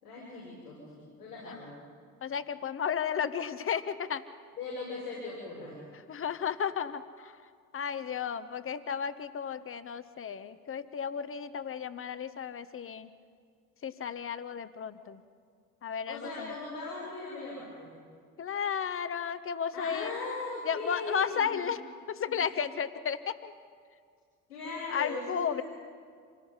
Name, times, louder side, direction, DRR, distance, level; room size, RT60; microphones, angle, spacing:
voice 1, 0.0-1.7 4.6-5.8 16.1-17.9 19.7-21.5 22.3-22.4 24.5-25.6, left 3 dB, 85° left, -10 dB, 6.4 m, -39 dB
voice 2, 2.2-4.2 6.1-7.4 7.7-13.1 13.8-15.2 15.8-16.5 18.4-20.1 20.6-21.8 22.1-23.5 24.9-25.6, left 7 dB, 30° left, 13 dB, 1.1 m, -33 dB
26.5 x 18.0 x 5.6 m, 2.1 s
figure-of-eight pair, 60°, 45 cm